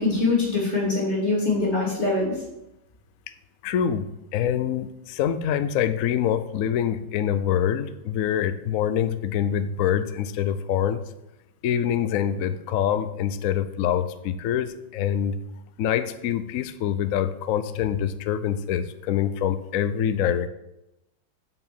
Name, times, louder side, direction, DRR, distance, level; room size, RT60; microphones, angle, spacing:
voice 1, 0.0-2.3, left 3 dB, 30° left, -4 dB, 3.3 m, -23 dB
voice 2, 3.6-11.0 11.6-15.4 15.8-20.5, left 9 dB, 85° left, 11 dB, 0.7 m, -25 dB
8.0 x 5.7 x 7.1 m, 0.89 s
omnidirectional pair, 2.2 m